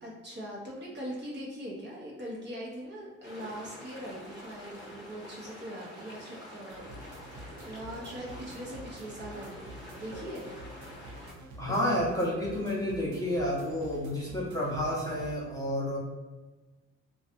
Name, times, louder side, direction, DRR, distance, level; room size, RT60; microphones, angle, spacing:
voice 1, 0.0-10.5 11.7-11.8, equal, 35° right, -4 dB, 0.8 m, -41 dB
sound 1, 3.2-11.3, equal, 15° right, 1.1 m, -47 dB
sound 2, 6.7-15.3, right 1 dB, 75° right, 0.5 m, -48 dB
voice 2, 11.6-16.0, left 1 dB, 10° left, -6 dB, 0.7 m, -30 dB
2.6 x 2.3 x 2.5 m, 1.2 s
cardioid pair, 90°, 30 cm